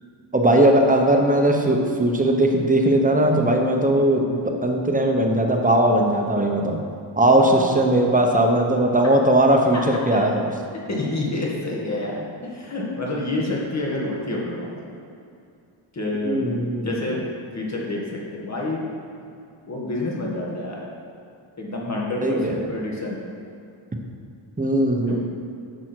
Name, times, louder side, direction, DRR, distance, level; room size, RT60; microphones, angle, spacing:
voice 1, 0.3-6.8 7.2-10.5 16.2-16.9 22.2-22.6 24.6-25.2, right 1 dB, 15° right, 2 dB, 0.9 m, -19 dB
voice 2, 7.4-8.0 9.9-10.0 10.9-14.8 15.9-16.5 16.8-17.3 17.5-18.9 19.7-20.9 21.6-23.2 25.1-25.2, left 2 dB, 35° left, -3 dB, 1.9 m, -28 dB
10.5 x 6.2 x 4.6 m, 2.5 s
wide cardioid pair, 130°, 49 cm